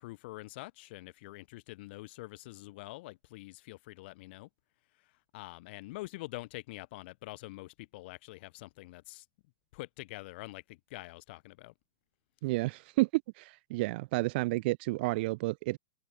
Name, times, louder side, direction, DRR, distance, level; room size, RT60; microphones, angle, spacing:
voice 1, 0.0-4.5 5.3-9.3 9.7-11.7, left 20 dB, 55° left, 3.7 m, -45 dB
voice 2, 12.4-13.1 13.4-15.8, right 21 dB, 55° right, 0.9 m, -31 dB
hypercardioid pair, 125°, 7 cm